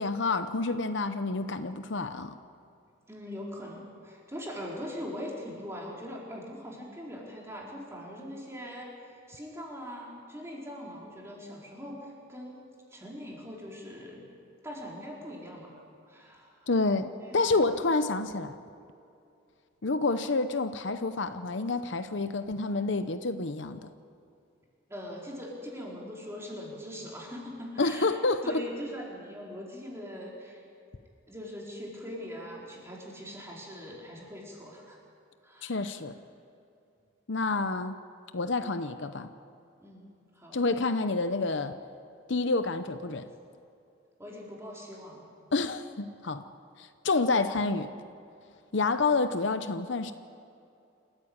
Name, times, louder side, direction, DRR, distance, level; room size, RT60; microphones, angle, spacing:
voice 1, 0.0-2.4 16.7-18.5 19.8-23.9 27.8-28.4 35.6-36.2 37.3-38.0 38.3-39.3 40.5-41.7 42.3-43.3 45.5-46.4 46.8-47.9 48.7-50.1, left 3 dB, 60° left, 10 dB, 0.8 m, -28 dB
voice 2, 3.1-14.3 14.6-15.8 16.1-16.7 17.2-17.8 24.9-28.1 28.4-30.6 31.3-35.0 35.4-35.9 39.8-40.1 40.3-40.6 44.2-45.2, equal, 15° right, -3 dB, 4.4 m, -41 dB
28.0 x 14.5 x 8.7 m, 2.6 s
head